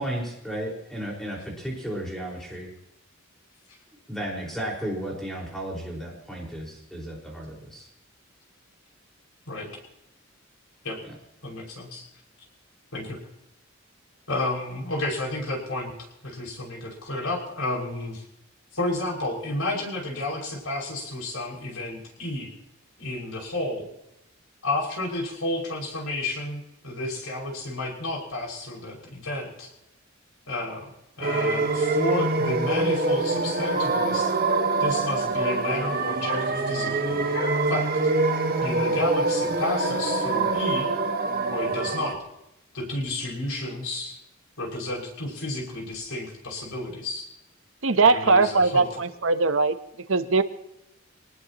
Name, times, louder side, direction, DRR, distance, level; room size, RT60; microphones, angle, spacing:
voice 1, 0.0-2.7 4.1-7.9 11.0-11.1, right 1 dB, ahead, -2 dB, 4.9 m, -34 dB
voice 2, 9.5-9.8 10.8-11.0 11.4-12.0 12.9-13.2 14.3-15.9 16.2-18.2 18.7-22.5 23.0-23.9 24.6-29.7 30.5-30.9 31.2-34.3 34.8-37.3 37.7-37.9 38.6-40.9 41.5-42.2 42.7-44.2 44.6-47.3 48.1-48.9, left 2 dB, 90° left, 0 dB, 6.0 m, -31 dB
sound 1, 31.2-42.1, right 3 dB, 45° right, 1.6 m, -25 dB
sound 2, 32.6-40.5, left 2 dB, 60° left, 7.5 m, -39 dB
voice 3, 47.8-49.8 50.1-50.4, right 3 dB, 70° right, 11 dB, 0.9 m, -20 dB
25.0 x 19.5 x 3.0 m, 0.84 s
head